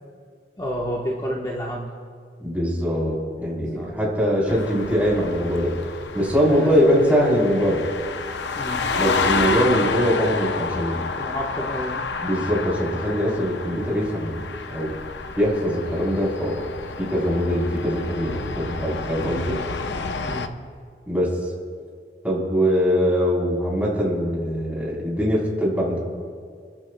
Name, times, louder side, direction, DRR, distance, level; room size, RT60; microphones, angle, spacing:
voice 1, 0.6-1.9 3.7-4.6 6.5-6.9 8.6-8.9 11.2-12.1 19.2-19.5 20.2-20.6, equal, 20° left, -4 dB, 1.1 m, -31 dB
voice 2, 2.4-5.7 6.1-7.9 9.0-11.1 12.2-14.3 14.7-14.9 15.4-16.6 17.0-19.5 21.1-21.3 22.2-26.0, equal, 10° right, -5 dB, 3.7 m, -22 dB
sound 1, 4.5-20.5, left 4 dB, 75° left, 0.7 m, -29 dB
28.5 x 14.0 x 2.3 m, 2.1 s
head